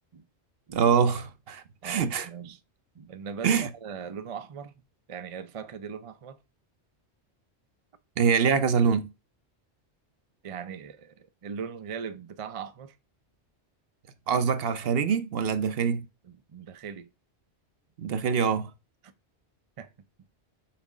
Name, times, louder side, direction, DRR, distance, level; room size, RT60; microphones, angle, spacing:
voice 1, 0.7-2.3 3.4-3.7 8.2-9.1 14.3-16.1 18.0-18.7, right 6 dB, 65° right, 0.9 m, -24 dB
voice 2, 1.8-2.6 2.9-4.7 5.1-6.4 10.4-13.0 16.2-17.1 19.0-19.1 19.8-19.9, right 6 dB, 40° right, 0.5 m, -40 dB
5.9 x 4.1 x 4.9 m
omnidirectional pair, 1.1 m